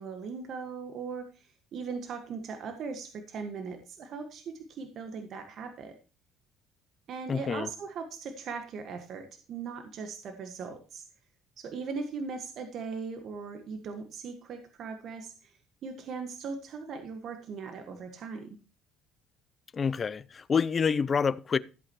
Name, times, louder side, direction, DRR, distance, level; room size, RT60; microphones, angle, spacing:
voice 1, 0.0-6.0 7.1-11.1 11.6-18.6, right 5 dB, 60° right, 1.5 m, -39 dB
voice 2, 7.3-7.7 19.7-21.6, left 6 dB, 40° left, 0.6 m, -27 dB
14.5 x 8.5 x 3.0 m
supercardioid pair, 75°, 0 cm